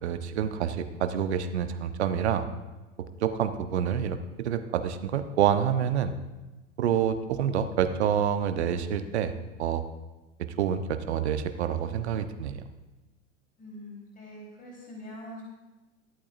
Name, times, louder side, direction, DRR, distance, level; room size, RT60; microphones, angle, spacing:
voice 1, 0.0-2.5 3.2-6.1 6.8-9.3 9.6-9.8 10.6-12.6, right 8 dB, 60° right, 10 dB, 1.0 m, -27 dB
voice 2, 13.6-15.4, left 1 dB, 20° left, -3 dB, 3.9 m, -44 dB
22.0 x 8.6 x 2.6 m, 1.1 s
figure-of-eight pair, 95°, 38 cm